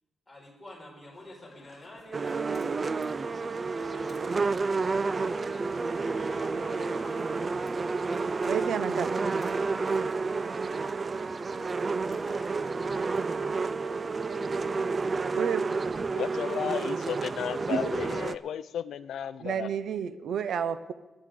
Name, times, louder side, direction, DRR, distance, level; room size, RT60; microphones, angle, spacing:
voice 1, 0.3-8.0 11.9-13.1, left 1 dB, 15° left, -3 dB, 5.4 m, -51 dB
sound 1, 1.1-13.3, left 3 dB, 35° left, 2.9 m, -54 dB
sound 2, 2.1-18.3, right 4 dB, 30° right, 0.4 m, -30 dB
voice 2, 8.5-9.1 15.4-15.7 17.7-17.8 19.4-20.9, right 8 dB, 70° right, 12 dB, 0.8 m, -30 dB
voice 3, 16.1-19.8, left 9 dB, 75° left, 15 dB, 0.5 m, -34 dB
24.5 x 9.8 x 3.8 m, 1.1 s
cardioid pair, 120°, 0 cm